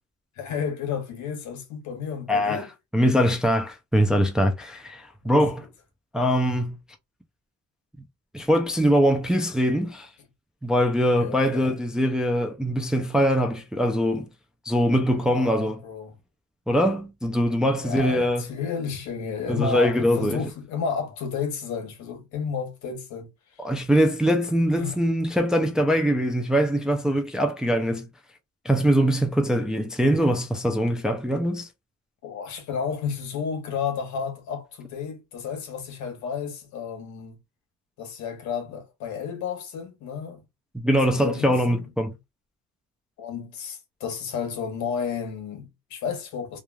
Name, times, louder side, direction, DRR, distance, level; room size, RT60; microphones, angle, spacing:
voice 1, 0.4-2.7 11.2-11.8 15.3-16.2 17.8-23.6 24.7-25.0 32.2-37.4 38.0-40.4 40.9-41.9 43.2-46.6, left 6 dB, 80° left, 1.1 m, -32 dB
voice 2, 2.3-2.7 2.9-5.7 6.1-6.8 8.3-10.1 10.6-14.3 14.7-15.8 16.7-18.4 19.5-20.5 23.6-28.1 28.7-31.7 40.7-42.1, equal, ahead, 0.3 m, -22 dB
3.1 x 2.3 x 2.2 m
cardioid pair, 140°, 29 cm